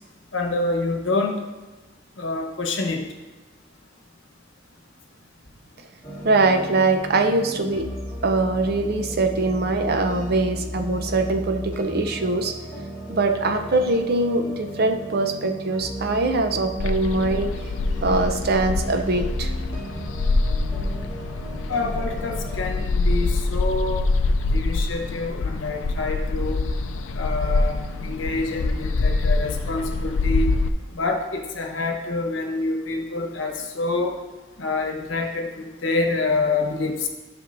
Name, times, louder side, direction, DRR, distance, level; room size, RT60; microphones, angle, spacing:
voice 1, 0.3-1.3 2.2-3.0 21.7-24.0 24.5-26.6 27.1-30.5 30.9-34.1 34.6-37.1, left 3 dB, 75° left, 3 dB, 1.1 m, -27 dB
sound 1, 6.0-22.8, equal, 20° left, 2.2 m, -35 dB
voice 2, 6.2-7.9 8.2-12.6 13.1-17.5 18.0-19.5, right 2 dB, 55° right, 6 dB, 0.6 m, -22 dB
sound 2, 16.8-30.7, left 3 dB, 90° left, 0.4 m, -25 dB
11.0 x 6.2 x 2.6 m, 1.2 s
head